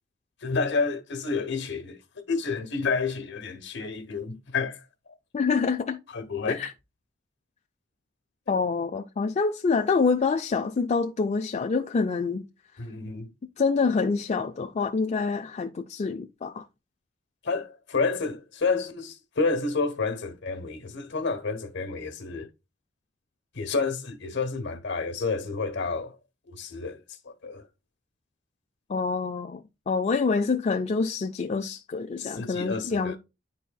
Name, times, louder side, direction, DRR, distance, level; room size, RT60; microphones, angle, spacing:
voice 1, 0.4-2.0 2.3-4.8 6.1-6.6 12.8-13.3 17.4-22.5 23.5-26.1 26.5-27.0 27.2-27.6 32.2-33.2, left 4 dB, 65° left, 1.1 m, -29 dB
voice 2, 5.3-6.0 6.5-6.7 8.5-12.5 13.6-16.7 28.9-33.2, left 4 dB, 35° left, 0.4 m, -26 dB
10.0 x 4.1 x 2.3 m
head